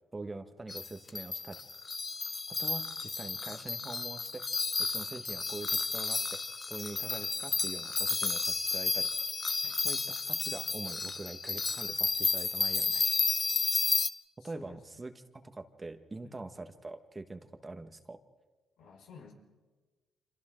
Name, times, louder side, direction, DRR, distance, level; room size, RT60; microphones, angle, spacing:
voice 1, 0.1-1.6 2.5-4.4 4.8-6.4 6.7-9.1 9.8-13.3 14.4-18.2, right 2 dB, 20° right, 8 dB, 1.6 m, -44 dB
sound 1, 0.7-14.1, left 4 dB, 30° left, 0.9 m, -32 dB
voice 2, 14.4-14.8 16.2-16.3 18.8-19.3, left 5 dB, 85° left, 0 dB, 5.2 m, -52 dB
29.5 x 26.5 x 3.9 m, 1.3 s
cardioid pair, 90°, 0 cm